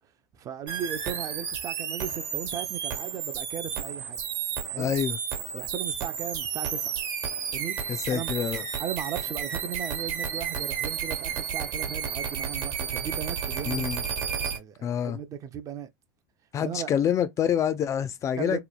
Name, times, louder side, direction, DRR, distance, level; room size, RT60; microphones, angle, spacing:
voice 1, 0.4-4.2 4.7-4.9 5.5-6.9 7.5-7.8 8.1-8.3 8.8-13.9 14.5-15.9 16.6-16.9 18.3-18.6, right 8 dB, 35° right, 0.5 m, -36 dB
sound 1, 0.7-14.6, right 7 dB, 60° right, 1.1 m, -32 dB
voice 2, 4.8-5.2 7.9-8.6 13.7-14.0 14.8-15.2 16.5-18.6, left 9 dB, 35° left, 0.4 m, -27 dB
3.0 x 2.2 x 2.2 m
hypercardioid pair, 90°, 9 cm